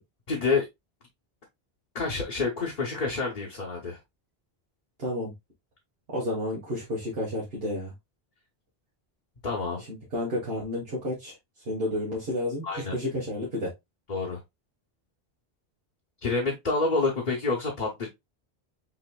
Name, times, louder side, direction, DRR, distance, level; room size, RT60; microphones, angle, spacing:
voice 1, 0.3-0.7 1.9-4.0 9.4-9.8 12.6-12.9 14.1-14.4 16.2-18.1, left 4 dB, 50° left, 1.1 m, -28 dB
voice 2, 5.0-5.3 6.1-7.9 9.9-11.3 11.7-13.7, left 1 dB, 75° right, 1.7 m, -31 dB
5.9 x 2.9 x 2.3 m
omnidirectional pair, 1.0 m